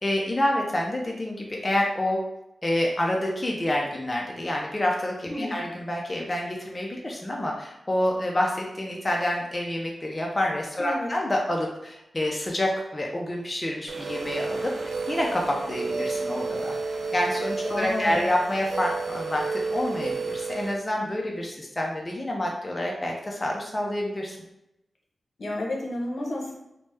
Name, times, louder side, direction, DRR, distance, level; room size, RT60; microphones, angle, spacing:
voice 1, 0.0-2.2 2.6-16.8 17.1-24.4, left 1 dB, 25° left, -1 dB, 0.4 m, -28 dB
voice 2, 5.3-5.6 10.8-11.1 17.7-18.3 25.4-26.6, left 1 dB, 65° left, -1 dB, 0.7 m, -31 dB
sound 1, 13.9-20.7, right 4 dB, 85° right, 0.3 m, -31 dB
3.0 x 2.0 x 3.2 m, 0.87 s
wide cardioid pair, 95°, 0 cm